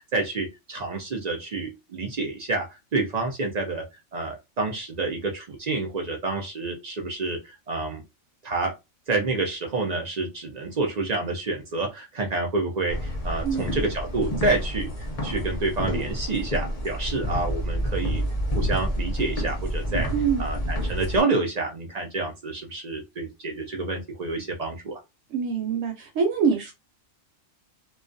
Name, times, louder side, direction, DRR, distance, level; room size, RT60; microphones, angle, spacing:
voice 1, 0.0-3.8 4.1-8.0 8.4-8.7 9.1-14.9 15.2-18.2 18.5-20.1 20.4-25.0, right 3 dB, 55° right, 0.4 m, -28 dB
sound 1, 12.9-21.2, equal, 40° left, 0.5 m, -29 dB
voice 2, 20.1-20.4 25.3-26.7, right 6 dB, 80° right, 1.0 m, -24 dB
2.3 x 2.2 x 2.5 m
omnidirectional pair, 1.3 m